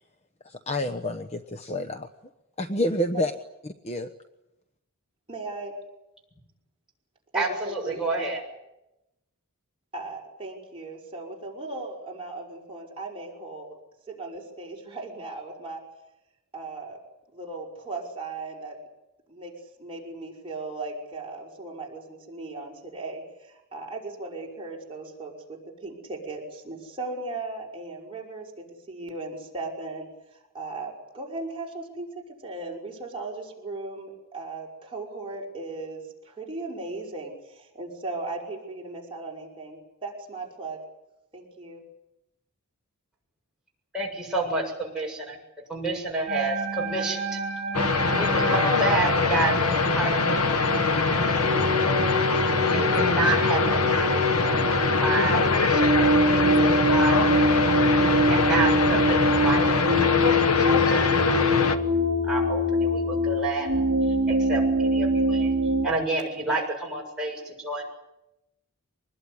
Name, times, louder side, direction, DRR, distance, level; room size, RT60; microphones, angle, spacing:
voice 1, 0.4-2.1 2.6-3.3 3.6-4.1, left 1 dB, 30° left, 5 dB, 1.0 m, -28 dB
voice 2, 5.3-5.7 7.3-8.3 9.9-13.7 14.1-15.8 16.5-17.0 17.3-18.8 19.3-19.5 19.8-30.1 30.5-40.8 41.3-41.8, right 3 dB, 25° right, -2 dB, 5.9 m, -37 dB
voice 3, 7.3-8.4 43.9-45.4 45.7-47.4 48.1-50.4 50.8-51.1 51.5-52.2 52.6-54.7 55.0-57.8 58.0-59.7 60.0-61.3 61.6-61.8 62.2-63.7 64.3-65.5 65.8-67.8, right 2 dB, 5° right, -3 dB, 7.3 m, -30 dB
sound 1, 46.3-65.9, equal, 55° right, 4.7 m, -25 dB
sound 2, 47.7-61.8, left 4 dB, 80° left, 1.5 m, -23 dB
24.5 x 20.5 x 9.8 m, 0.92 s
head